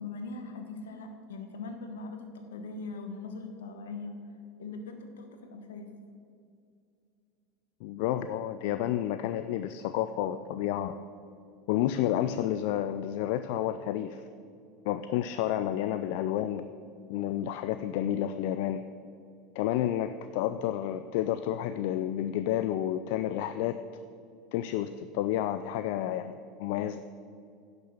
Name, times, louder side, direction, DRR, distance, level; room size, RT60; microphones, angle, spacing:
voice 1, 0.0-4.1 4.6-5.9, left 3 dB, 85° left, 6 dB, 1.4 m, -41 dB
voice 2, 7.8-11.0 11.7-14.2 14.9-16.7 17.1-18.8 19.6-23.8 24.5-27.0, left 11 dB, 65° left, 10 dB, 0.4 m, -30 dB
10.5 x 6.8 x 6.6 m, 2.4 s
hypercardioid pair, 90°, 0 cm